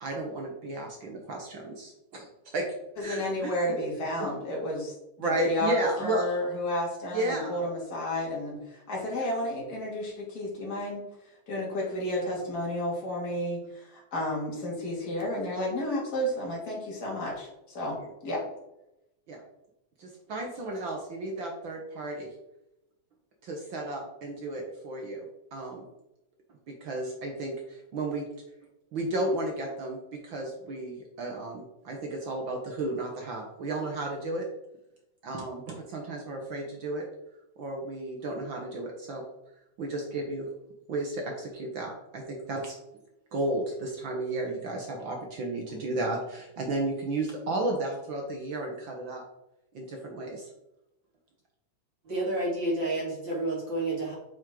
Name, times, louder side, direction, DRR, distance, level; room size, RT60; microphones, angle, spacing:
voice 1, 0.0-2.7 3.0-3.5 5.2-6.3 7.1-7.6 18.0-18.1 19.3-19.4 20.0-22.3 23.4-25.3 25.5-25.8 26.8-28.3 28.9-34.5 35.2-37.1 37.6-39.2 39.8-40.5 40.9-42.7 43.3-49.2 49.7-50.5, right 2 dB, 65° right, 1 dB, 1.2 m, -33 dB
voice 2, 3.0-11.0 11.5-18.0 18.2-18.4, left 1 dB, 30° left, -4 dB, 2.6 m, -31 dB
voice 3, 52.0-54.1, right 2 dB, 40° right, -6 dB, 2.9 m, -30 dB
7.6 x 6.2 x 3.8 m, 0.90 s
omnidirectional pair, 3.5 m